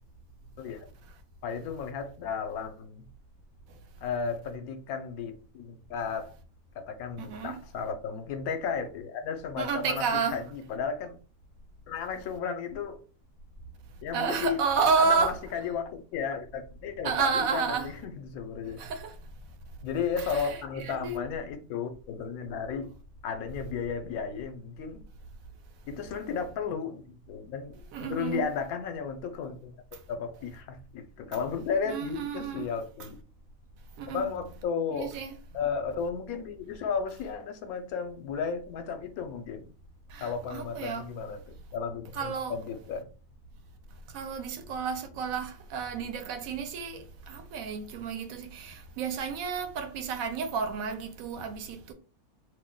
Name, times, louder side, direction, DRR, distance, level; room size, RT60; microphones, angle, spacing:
voice 1, 1.4-3.1 4.0-6.4 6.7-11.2 11.9-13.0 14.0-14.6 15.0-18.8 19.8-22.9 23.2-25.1 25.9-29.7 30.1-33.2 34.1-35.2 35.5-39.7 40.2-41.4 41.7-43.1, left 6 dB, 80° left, 1.0 m, -34 dB
voice 2, 7.2-7.6 9.6-10.4 14.1-15.3 17.0-17.9 18.8-19.1 20.3-20.4 20.8-21.3 27.9-28.5 31.9-32.7 34.0-34.3 34.9-35.4 40.1-41.1 42.1-42.5 44.1-51.9, right 5 dB, 75° right, 1.0 m, -31 dB
2.6 x 2.0 x 3.7 m
omnidirectional pair, 1.5 m